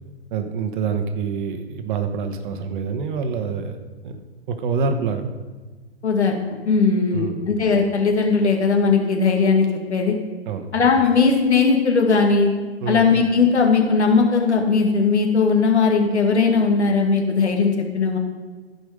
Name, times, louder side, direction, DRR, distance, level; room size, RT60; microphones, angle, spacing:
voice 1, 0.3-3.8 4.0-4.2 4.5-5.2 7.1-7.4 10.5-10.7 12.8-13.1, right 5 dB, 50° right, 7 dB, 1.2 m, -26 dB
voice 2, 6.0-6.4 6.7-9.7 9.9-10.1 10.7-12.5 12.9-18.2, left 4 dB, 85° left, 2 dB, 2.0 m, -18 dB
15.0 x 5.3 x 5.1 m, 1.3 s
hypercardioid pair, 130°, 33 cm